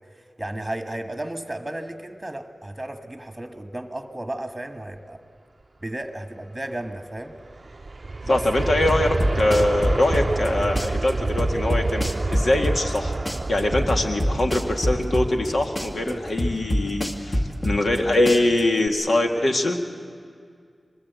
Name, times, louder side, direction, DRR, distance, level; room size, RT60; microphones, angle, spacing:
voice 1, 0.1-5.2 5.8-7.4 8.2-8.5 16.0-16.2, right 1 dB, 15° right, 6 dB, 1.4 m, -34 dB
Aircraft, 7.3-18.1 18.6-18.7, right 3 dB, 45° right, 0.6 m, -30 dB
voice 2, 8.3-13.1 13.5-19.8, left 1 dB, 70° left, 3 dB, 1.9 m, -23 dB
sound 1, 8.9-10.5 10.8-13.0 13.3-15.5 15.8-18.0 18.3-18.9, equal, 30° left, 2.2 m, -25 dB
23.0 x 21.0 x 8.1 m, 2.2 s
cardioid pair, 45°, 0 cm